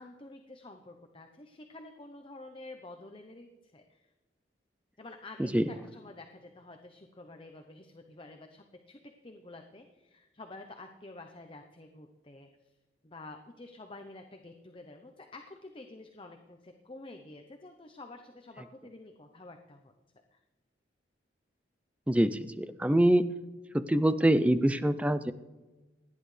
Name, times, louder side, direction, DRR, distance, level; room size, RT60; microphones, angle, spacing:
voice 1, 0.0-4.1 5.0-12.8 13.0-19.9 20.3-20.4, left 2 dB, 30° left, 5 dB, 0.8 m, -49 dB
voice 2, 22.1-23.3 23.7-25.3, right 1 dB, 5° right, 12 dB, 0.5 m, -25 dB
27.5 x 10.5 x 3.3 m, 1.2 s
head